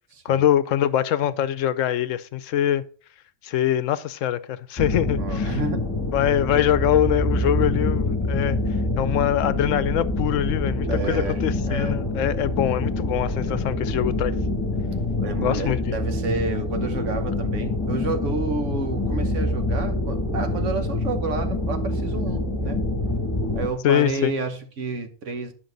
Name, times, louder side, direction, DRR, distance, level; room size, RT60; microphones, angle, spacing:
voice 1, 0.2-2.8 3.4-5.6 6.1-8.6 9.0-14.3 15.4-16.0 23.8-24.3, left 11 dB, 80° left, 0.9 m, -23 dB
sound 1, 4.8-23.7, left 2 dB, 20° left, 1.3 m, -26 dB
voice 2, 5.2-5.9 10.9-11.4 11.7-12.0 15.1-22.8 23.5-25.5, right 3 dB, 70° right, 1.4 m, -30 dB
10.0 x 5.8 x 3.9 m
omnidirectional pair, 1.3 m